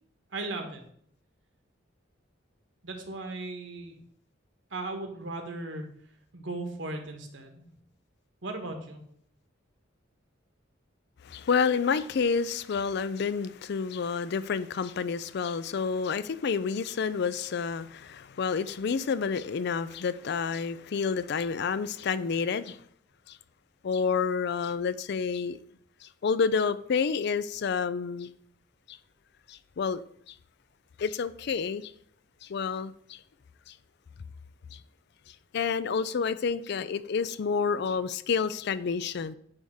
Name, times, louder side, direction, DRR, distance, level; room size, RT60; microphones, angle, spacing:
voice 1, 0.3-0.8 2.8-4.0 4.7-5.9 6.3-7.7 8.4-9.0, right 2 dB, 65° right, 1.5 m, -37 dB
voice 2, 11.2-22.8 23.3-23.4 23.8-25.6 26.2-28.3 28.9-29.0 29.5-30.3 31.0-31.9 32.4-33.2 33.7-33.8 34.7-34.8 35.5-39.3, left 5 dB, 60° left, 0.4 m, -29 dB
9.6 x 3.5 x 6.4 m
head